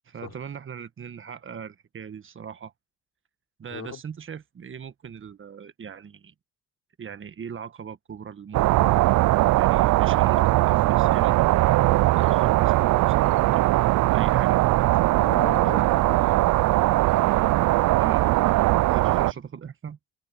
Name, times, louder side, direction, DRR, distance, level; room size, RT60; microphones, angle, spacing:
voice 1, 0.0-2.7 3.6-6.3 7.0-8.8 9.6-11.7 12.1-13.7 14.1-15.2 15.6-15.7 17.9-18.6 18.9-20.0, right 7 dB, 40° right, 1.4 m, -40 dB
sound 1, 8.5-19.3, right 18 dB, 70° right, 0.4 m, -20 dB
voice 2, 14.9-16.4 19.1-19.3, left 8 dB, 60° left, 5.2 m, -39 dB
cardioid pair, 90°, 30 cm